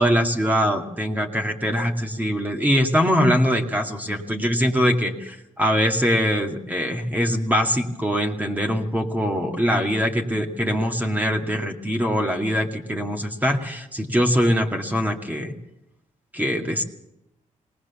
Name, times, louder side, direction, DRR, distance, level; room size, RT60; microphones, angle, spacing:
voice 1, 0.0-15.5 16.3-16.8, equal, 10° right, 2 dB, 2.2 m, -22 dB
19.5 x 19.5 x 7.1 m, 0.86 s
cardioid pair, 80°, 13 cm